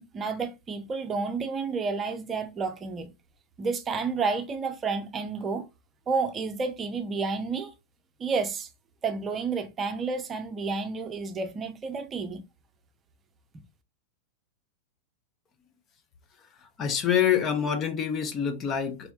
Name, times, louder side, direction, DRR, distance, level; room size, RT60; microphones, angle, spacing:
voice 1, 0.0-3.1 3.6-5.6 6.1-7.7 8.2-8.7 9.0-12.4, right 4 dB, 25° right, 0.8 m, -30 dB
voice 2, 16.8-19.1, left 8 dB, 30° left, 0.9 m, -26 dB
4.5 x 4.2 x 2.7 m
figure-of-eight pair, 90°, 0 cm